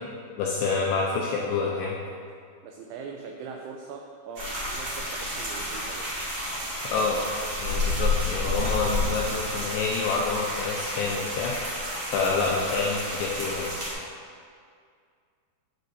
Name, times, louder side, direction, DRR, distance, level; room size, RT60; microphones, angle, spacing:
voice 1, 0.4-2.0 6.8-7.2 7.6-11.5 12.1-13.7, left 4 dB, 85° left, -3 dB, 2.6 m, -27 dB
voice 2, 2.6-6.1 6.8-6.9, right 5 dB, 90° right, 1 dB, 2.7 m, -41 dB
sound 1, 4.3-13.9, left 1 dB, 60° right, 1.6 m, -30 dB
9.2 x 7.5 x 2.6 m, 2.2 s
omnidirectional pair, 6.0 m